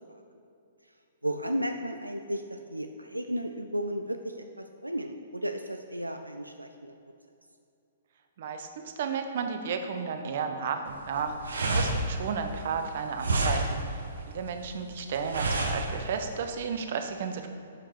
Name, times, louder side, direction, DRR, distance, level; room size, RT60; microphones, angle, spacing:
voice 1, 1.2-6.9, equal, 90° right, 6 dB, 0.5 m, -34 dB
voice 2, 8.4-17.5, right 6 dB, 50° right, 6 dB, 1.0 m, -33 dB
sound 1, 10.9-16.4, right 2 dB, 70° right, 1.4 m, -30 dB
11.5 x 5.8 x 4.9 m, 2.6 s
figure-of-eight pair, 120°, 0 cm